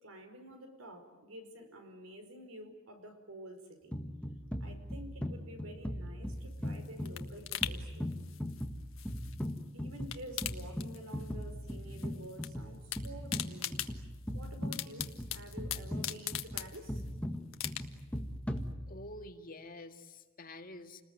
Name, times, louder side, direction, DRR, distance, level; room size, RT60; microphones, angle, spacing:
voice 1, 0.0-4.0 4.6-8.1 9.7-13.8 14.3-17.0, right 1 dB, 90° right, 7 dB, 4.8 m, -49 dB
sound 1, 3.9-19.3, equal, 5° left, 1.6 m, -40 dB
sound 2, 6.3-9.6 9.9-11.4 11.7-12.5 12.7-17.1 17.5-18.2 18.6-18.7, left 12 dB, 75° left, 1.5 m, -41 dB
voice 2, 18.9-21.0, left 1 dB, 45° left, 6 dB, 2.0 m, -48 dB
30.0 x 20.5 x 9.5 m, 1.2 s
head